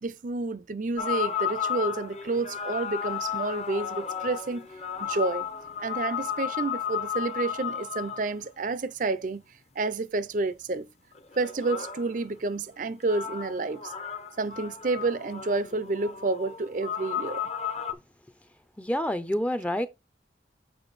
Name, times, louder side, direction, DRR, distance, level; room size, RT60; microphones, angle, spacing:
voice 1, 0.0-4.7 5.0-5.5 5.8-9.4 9.8-10.9 11.4-13.9 14.4-17.4, right 3 dB, 45° right, 0.5 m, -30 dB
sound 1, 1.0-8.3 11.1-12.1 13.1-17.9, left 8 dB, 35° left, 0.8 m, -33 dB
voice 2, 18.8-19.9, equal, 5° left, 0.5 m, -28 dB
7.0 x 5.2 x 4.0 m
head